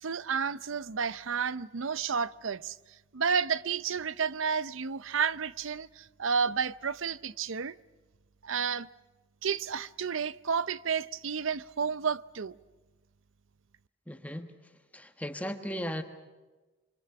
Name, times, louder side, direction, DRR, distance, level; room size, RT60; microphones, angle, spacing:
voice 1, 0.0-2.8 3.1-7.8 8.4-8.9 9.4-12.5, right 6 dB, 85° right, 0.7 m, -31 dB
voice 2, 14.1-14.5 14.9-16.0, equal, 5° left, 1.4 m, -36 dB
27.0 x 25.0 x 5.9 m
head